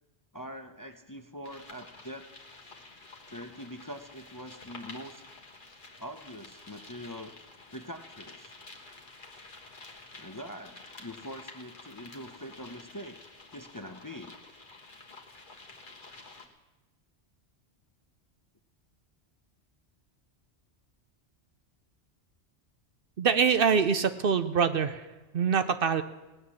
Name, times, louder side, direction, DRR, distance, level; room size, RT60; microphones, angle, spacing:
voice 1, 0.3-2.3 3.3-5.2 6.0-7.4 7.7-8.6 10.2-13.2 13.5-14.4, equal, 20° left, 7 dB, 0.6 m, -43 dB
sound 1, 1.4-16.5, left 3 dB, 45° left, 1.7 m, -50 dB
voice 2, 23.2-25.1 25.3-26.0, right 6 dB, 60° right, 11 dB, 0.8 m, -24 dB
18.0 x 9.5 x 7.1 m, 1.1 s
omnidirectional pair, 1.2 m